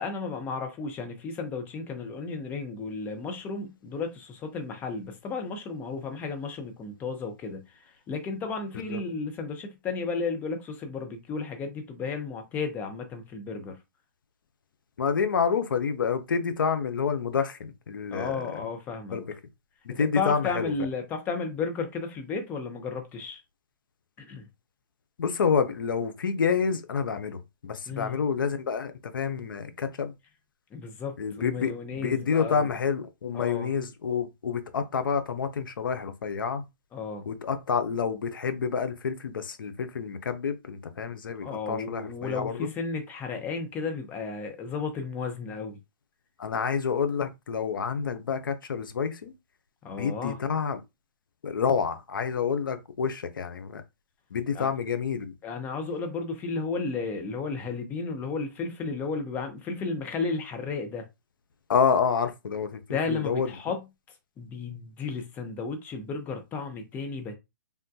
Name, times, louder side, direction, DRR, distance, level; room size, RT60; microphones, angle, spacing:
voice 1, 0.0-13.8 18.1-19.2 19.9-23.4 24.2-24.5 27.9-28.2 30.7-32.8 33.3-33.7 36.9-37.2 41.4-45.8 49.8-50.4 54.5-54.7 55.4-61.1 62.9-63.8 64.4-67.4, left 4 dB, 15° left, 0.6 m, -33 dB
voice 2, 15.0-18.3 19.1-19.2 19.9-20.7 25.2-30.1 31.2-36.6 37.3-42.7 46.4-49.3 50.0-50.8 51.4-53.8 54.3-55.3 61.7-62.8 63.1-63.5, left 6 dB, 80° left, 0.6 m, -28 dB
3.5 x 2.2 x 2.7 m
hypercardioid pair, 145°, 11 cm